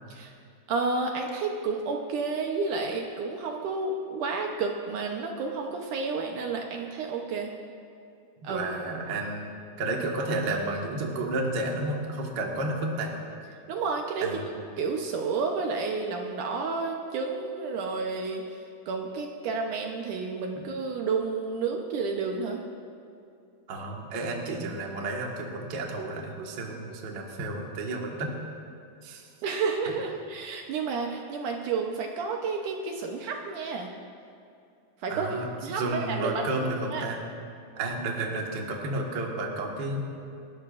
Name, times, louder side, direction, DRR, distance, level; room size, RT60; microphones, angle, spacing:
voice 1, 0.7-7.5 8.4-8.7 13.7-14.3 14.8-22.6 29.4-33.9 35.0-36.4 36.9-37.0, right 4 dB, 70° right, 2 dB, 2.2 m, -31 dB
voice 2, 8.4-13.1 14.2-14.4 23.7-28.3 29.0-29.3 35.1-37.2 37.8-40.0, right 2 dB, 45° right, 0 dB, 1.4 m, -31 dB
29.0 x 12.5 x 2.5 m, 2.5 s
omnidirectional pair, 4.2 m